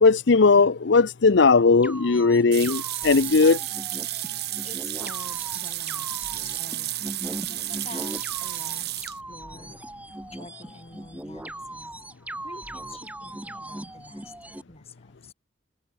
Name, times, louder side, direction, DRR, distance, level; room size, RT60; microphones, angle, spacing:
voice 1, 0.0-3.6, left 4 dB, 65° left, 0.6 m, -18 dB
sound 1, 1.8-14.6, right 1 dB, 10° right, 1.3 m, -39 dB
sound 2, 2.5-9.2, right 16 dB, 60° right, 1.0 m, -32 dB
voice 2, 4.3-7.1 7.5-9.9 10.3-11.9 12.4-14.3 14.7-15.3, left 3 dB, 35° left, 3.8 m, -47 dB
open air
head